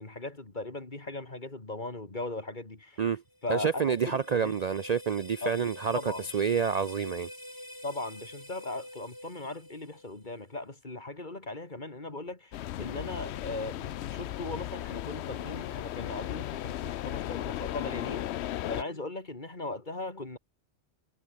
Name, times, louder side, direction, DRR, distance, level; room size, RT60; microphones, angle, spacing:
voice 1, 0.0-3.0 3.4-4.5 5.4-5.6 5.9-6.3 7.8-18.2 18.7-20.4, left 2 dB, 45° left, 3.1 m, -38 dB
sound 1, 3.3-10.4, left 1 dB, 20° left, 4.5 m, -47 dB
voice 2, 3.5-6.0 6.3-7.3, right 7 dB, 50° right, 0.6 m, -28 dB
sound 2, 12.5-18.8, left 13 dB, 85° left, 0.9 m, -36 dB
omnidirectional pair, 1.1 m